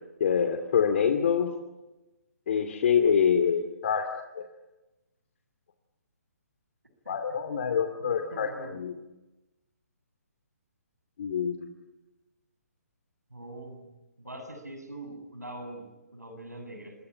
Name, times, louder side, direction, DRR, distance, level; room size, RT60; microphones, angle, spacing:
voice 1, 0.2-1.5 2.5-4.1 4.3-4.4 7.1-8.9 11.2-11.7, left 7 dB, 50° left, 5 dB, 2.7 m, -25 dB
voice 2, 8.0-8.8 13.3-13.9 14.2-16.9, right 1 dB, 90° right, 7 dB, 7.6 m, -43 dB
26.0 x 21.0 x 10.0 m, 1.0 s
figure-of-eight pair, 140°, 9 cm